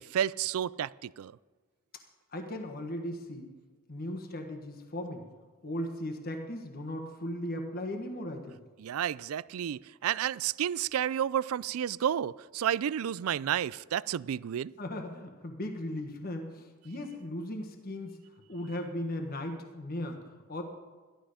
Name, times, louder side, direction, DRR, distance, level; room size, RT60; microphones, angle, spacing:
voice 1, 0.0-1.3 8.8-14.7, right 9 dB, 70° right, 20 dB, 0.3 m, -31 dB
voice 2, 2.3-3.5 3.9-5.2 5.6-8.6 14.8-18.2 18.5-20.6, left 1 dB, 40° left, 4 dB, 1.4 m, -37 dB
14.0 x 12.0 x 5.1 m, 1.4 s
head